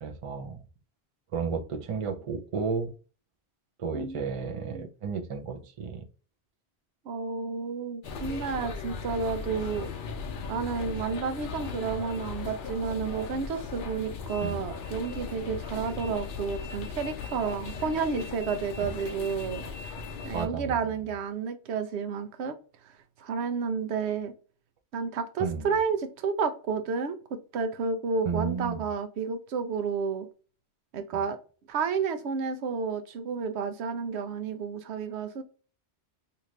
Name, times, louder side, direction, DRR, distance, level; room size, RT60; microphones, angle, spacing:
voice 1, 0.0-0.6 1.3-2.9 3.8-6.0 14.4-14.6 18.8-18.9 20.3-20.8 25.4-25.7 28.3-28.8, right 5 dB, 45° right, 0.5 m, -32 dB
voice 2, 3.9-4.9 7.0-9.9 10.5-19.6 20.2-22.5 22.8-24.3 24.9-30.3 30.9-31.4 31.7-35.4, right 5 dB, 85° right, 0.9 m, -31 dB
sound 1, 8.0-20.5, left 5 dB, 60° left, 0.7 m, -38 dB
2.8 x 2.5 x 3.1 m
omnidirectional pair, 1.1 m